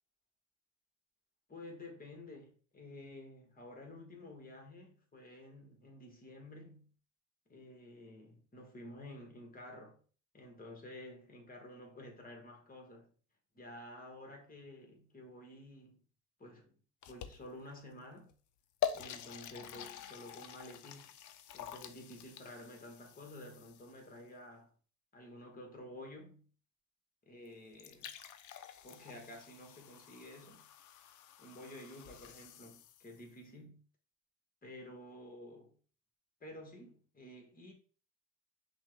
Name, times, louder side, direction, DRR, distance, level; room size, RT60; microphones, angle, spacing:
voice 1, 1.5-6.9 7.5-10.0 10.3-13.1 13.5-16.0 16.4-16.8 17.1-18.3 18.9-21.1 21.5-24.7 25.1-26.4 27.2-28.1 28.8-30.6 31.4-33.8 34.6-35.7 36.4-37.7, left 1 dB, 30° left, 1.4 m, -51 dB
sound 1, 17.0-17.7 18.3-18.4 18.8-24.1 27.5-27.6 27.7-33.3, left 10 dB, 75° left, 0.5 m, -46 dB
5.7 x 2.3 x 3.2 m
cardioid pair, 90°, 30 cm